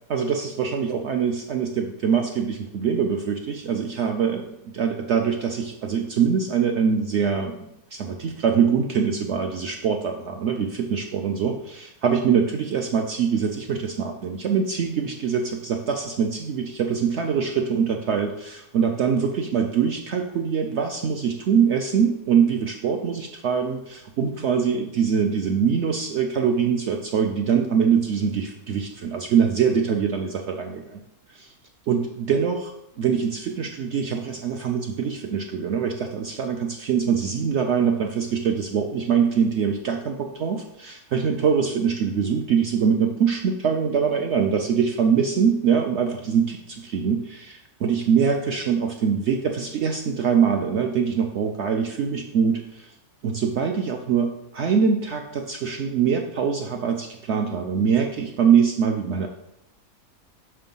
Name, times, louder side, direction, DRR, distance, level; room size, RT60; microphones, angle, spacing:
voice 1, 0.1-31.0 31.3-31.5 31.9-52.9 53.2-59.3, right 7 dB, 75° right, 3 dB, 0.6 m, -23 dB
6.0 x 3.3 x 5.3 m, 0.80 s
omnidirectional pair, 1.7 m